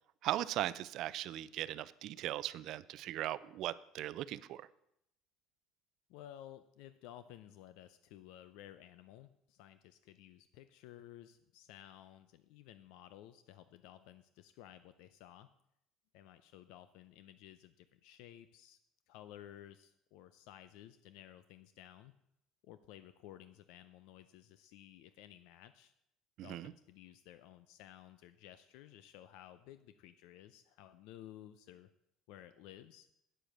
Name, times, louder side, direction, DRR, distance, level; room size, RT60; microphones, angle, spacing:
voice 1, 0.2-4.6 26.4-26.7, right 14 dB, 60° right, 17 dB, 0.4 m, -38 dB
voice 2, 6.1-15.5 16.1-18.8 19.1-22.1 22.6-25.9 26.4-31.9 32.3-33.1, left 12 dB, 75° left, 12 dB, 0.5 m, -55 dB
8.8 x 7.7 x 6.6 m, 0.78 s
cardioid pair, 130°, 0 cm